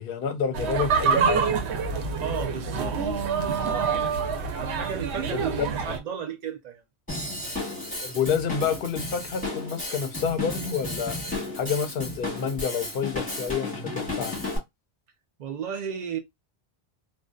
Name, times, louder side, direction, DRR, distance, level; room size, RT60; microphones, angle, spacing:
voice 1, 0.0-1.6 5.3-5.7 8.0-11.2 11.5-14.4, left 6 dB, 65° left, 0.7 m, -29 dB
sound 1, 0.5-6.0, right 5 dB, 85° right, 0.9 m, -26 dB
voice 2, 2.2-3.9 4.5-6.8 15.4-16.2, right 8 dB, 50° right, 0.5 m, -34 dB
Drum kit / Drum, 7.1-14.6, left 2 dB, 10° left, 1.1 m, -33 dB
2.6 x 2.1 x 2.2 m
omnidirectional pair, 1.1 m